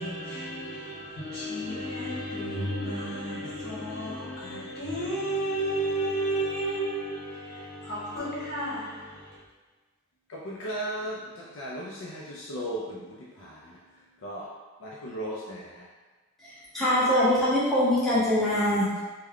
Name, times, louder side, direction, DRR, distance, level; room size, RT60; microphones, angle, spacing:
voice 1, 0.0-9.4, right 1 dB, 45° left, 1.2 m, -32 dB
voice 2, 10.3-13.6 14.2-14.5 14.8-15.6, right 1 dB, 65° left, 0.4 m, -36 dB
voice 3, 16.7-19.0, left 1 dB, ahead, 0.7 m, -23 dB
3.4 x 2.2 x 3.6 m
head